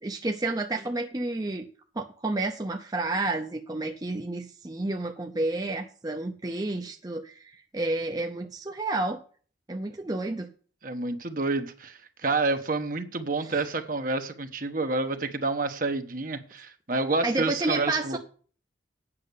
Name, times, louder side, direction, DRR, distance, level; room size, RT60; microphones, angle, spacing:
voice 1, 0.0-1.6 1.9-9.2 9.7-10.5 13.4-13.7 17.2-18.2, right 2 dB, 20° right, 0.6 m, -30 dB
voice 2, 10.8-18.2, right 3 dB, 45° right, 1.2 m, -29 dB
8.7 x 6.4 x 8.3 m
head